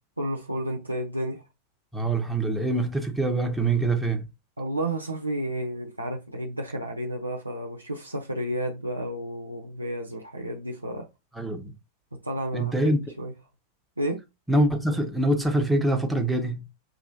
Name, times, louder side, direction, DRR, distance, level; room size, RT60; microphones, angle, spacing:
voice 1, 0.2-1.4 4.6-11.1 12.1-12.9 13.2-13.3 14.0-14.2, right 1 dB, 85° right, 0.8 m, -31 dB
voice 2, 1.9-4.3 11.4-11.7 12.5-13.0 14.5-16.6, right 2 dB, 5° right, 1.1 m, -24 dB
6.3 x 3.0 x 2.8 m
figure-of-eight pair, 90°, 0 cm